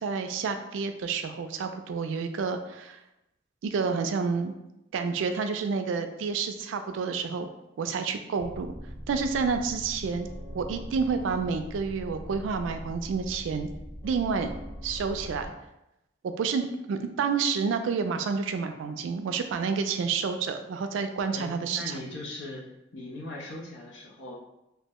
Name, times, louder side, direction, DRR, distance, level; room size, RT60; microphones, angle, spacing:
voice 1, 0.0-3.0 3.6-4.5 4.9-7.5 7.8-8.7 9.1-10.3 10.5-13.7 14.0-14.5 14.8-15.5 16.2-21.8, right 5 dB, 80° right, 8 dB, 0.3 m, -29 dB
sound 1, 8.4-15.5, equal, 35° left, 0.8 m, -41 dB
voice 2, 21.3-22.6 22.9-24.4, left 2 dB, 75° left, -2 dB, 0.7 m, -39 dB
2.8 x 2.0 x 3.5 m, 0.90 s
head